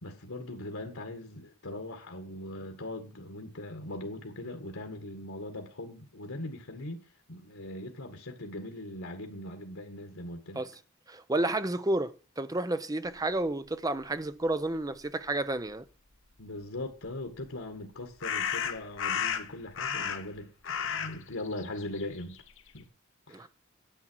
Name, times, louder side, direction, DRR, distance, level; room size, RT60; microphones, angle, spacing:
voice 1, 0.0-7.0 7.3-10.6 16.4-22.4 22.7-22.9 23.3-23.5, left 1 dB, 85° left, 1.9 m, -40 dB
voice 2, 11.1-15.9 23.3-23.5, right 2 dB, 15° right, 0.7 m, -31 dB
sound 1, 17.1-17.2 18.2-20.4 20.6-22.8, left 8 dB, 65° left, 1.2 m, -33 dB
10.0 x 8.8 x 4.7 m
head